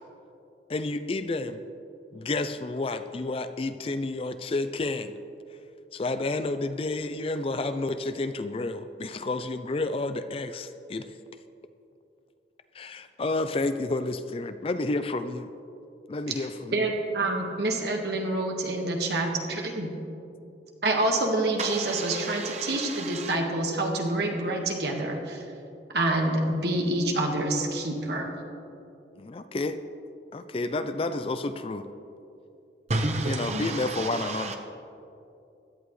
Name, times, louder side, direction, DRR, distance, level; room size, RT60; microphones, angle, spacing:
voice 1, 0.7-1.6 2.1-5.1 5.9-11.1 12.7-15.5 16.1-16.9 29.2-29.8 30.3-31.8 33.3-34.6, left 2 dB, 30° left, 10 dB, 0.4 m, -30 dB
voice 2, 16.7-19.9 20.8-25.4 25.9-28.3, right 2 dB, 65° right, 1 dB, 1.6 m, -27 dB
voice 3, 21.6-23.3 32.9-34.6, right 2 dB, 40° right, 3 dB, 1.0 m, -31 dB
16.5 x 11.0 x 3.2 m, 2.7 s
head